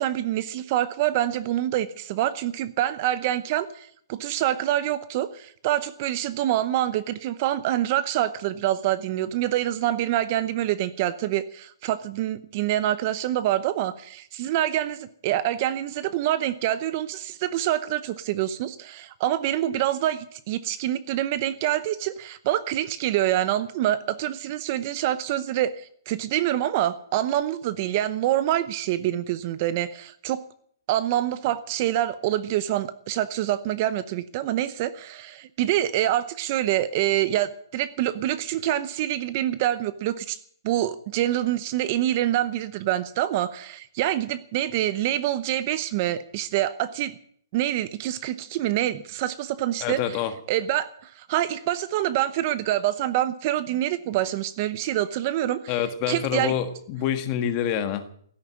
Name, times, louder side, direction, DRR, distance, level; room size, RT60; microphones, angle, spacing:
voice 1, 0.0-30.4 30.9-40.4 40.6-47.1 47.5-50.2 50.5-55.8 56.1-56.5, right 13 dB, 30° right, 15 dB, 0.8 m, -26 dB
voice 2, 49.8-50.3 55.7-58.1, left 9 dB, 25° left, 9 dB, 1.6 m, -26 dB
16.0 x 9.4 x 9.2 m, 0.62 s
hypercardioid pair, 160°, 2 cm